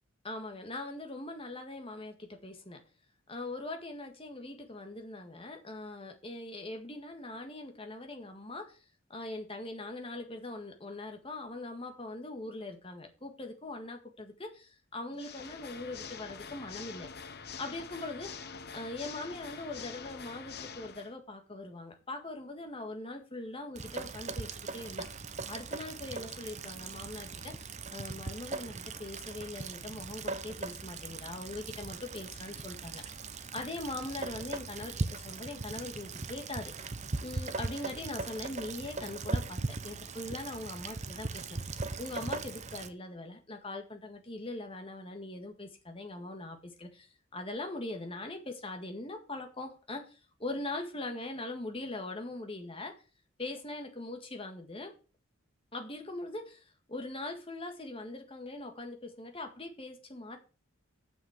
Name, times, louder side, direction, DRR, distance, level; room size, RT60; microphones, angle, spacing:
voice 1, 0.2-2.8 3.3-8.8 9.1-17.1 17.6-18.4 18.7-25.1 25.5-33.0 33.5-36.9 37.2-41.7 42.0-52.9 53.4-55.0 55.7-60.4, left 2 dB, 25° left, 1.8 m, -41 dB
Water / Mechanisms, 15.1-21.1, left 6 dB, 50° left, 0.9 m, -45 dB
Rain, 23.7-42.9, right 3 dB, 35° right, 0.7 m, -39 dB
7.3 x 6.3 x 7.2 m
head